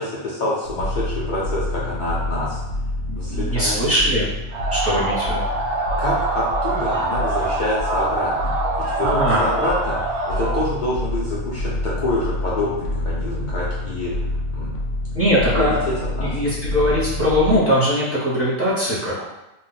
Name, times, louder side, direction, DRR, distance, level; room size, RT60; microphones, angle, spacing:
voice 1, 0.0-2.6 3.2-3.8 6.0-14.3 14.5-14.7 15.6-15.7 16.2-16.4, left 2 dB, 90° left, -7 dB, 0.4 m, -26 dB
sound 1, 0.6-17.6, left 1 dB, 70° left, 0.9 m, -28 dB
voice 2, 3.1-4.3 4.7-5.5 9.0-9.5 15.1-15.8 16.2-19.2, equal, 15° right, -8 dB, 0.7 m, -21 dB
sound 2, 4.5-10.7, right 2 dB, 65° right, 0.7 m, -25 dB
2.4 x 2.1 x 3.9 m, 0.97 s
omnidirectional pair, 1.5 m